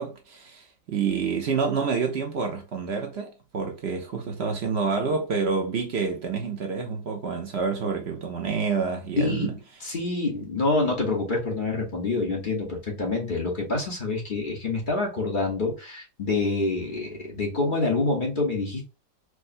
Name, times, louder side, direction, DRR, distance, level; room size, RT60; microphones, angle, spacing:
voice 1, 0.0-9.5, right 5 dB, 65° right, 0.6 m, -28 dB
voice 2, 9.2-9.6 9.8-18.8, left 3 dB, 35° left, 0.9 m, -27 dB
4.8 x 2.1 x 2.5 m
omnidirectional pair, 1.8 m